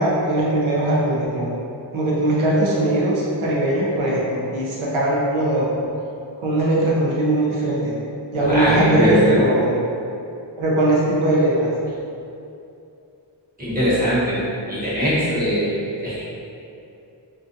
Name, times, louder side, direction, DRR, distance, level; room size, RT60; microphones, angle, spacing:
voice 1, 0.0-1.5 1.9-5.7 6.4-8.0 8.3-9.8 10.6-11.7, right 1 dB, 90° right, -5 dB, 0.7 m, -20 dB
voice 2, 8.4-9.4 13.6-14.4 14.7-16.2, equal, 20° right, -11 dB, 1.0 m, -21 dB
2.4 x 2.3 x 2.6 m, 2.7 s
wide cardioid pair, 65°, 47 cm